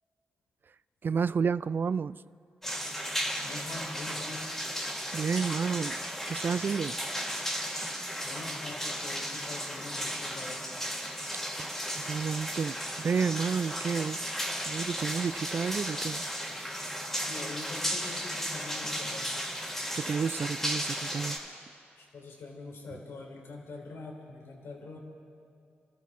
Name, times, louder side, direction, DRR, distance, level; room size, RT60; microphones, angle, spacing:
voice 1, 1.0-2.2 5.1-7.0 11.6-11.7 12.0-14.3 14.7-16.2 19.9-21.4, right 6 dB, 50° right, 0.3 m, -31 dB
sound 1, 2.6-21.4, equal, 5° left, 3.7 m, -35 dB
voice 2, 3.4-4.4 8.2-10.7 17.2-19.4 22.0-25.0, left 3 dB, 70° left, 3.6 m, -44 dB
27.0 x 13.0 x 3.7 m
supercardioid pair, 55°, 4 cm